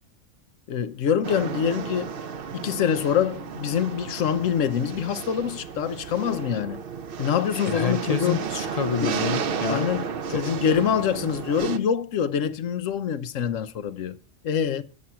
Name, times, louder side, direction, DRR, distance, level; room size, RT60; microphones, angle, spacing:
voice 1, 0.7-2.1 2.5-6.8 7.2-8.5 9.0-9.2 9.7-14.2 14.4-14.8, left 8 dB, 85° left, 1.1 m, -25 dB
sound 1, 1.2-11.8, right 6 dB, 55° right, 0.8 m, -33 dB
voice 2, 7.7-9.9 10.3-10.5, left 6 dB, 50° left, 0.5 m, -28 dB
8.6 x 7.5 x 5.7 m
omnidirectional pair, 1.3 m